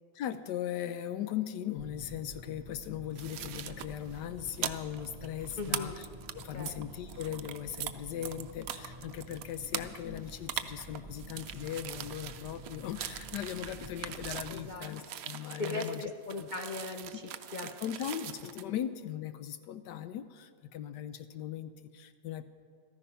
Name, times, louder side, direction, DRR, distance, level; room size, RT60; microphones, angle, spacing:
voice 1, 0.1-6.1 6.3-16.1 16.4-16.5 17.6-22.5, left 10 dB, 80° left, 11 dB, 1.2 m, -39 dB
sound 1, 1.8-14.7, right 1 dB, 25° right, 0.4 m, -49 dB
sound 2, 3.1-7.9 8.2-18.6, right 11 dB, 65° right, 1.0 m, -41 dB
voice 2, 5.6-6.0 6.5-6.7 14.5-14.9 15.6-17.7 18.4-18.8, left 3 dB, 55° left, 4 dB, 0.5 m, -39 dB
14.5 x 14.0 x 5.7 m, 2.1 s
omnidirectional pair, 1.8 m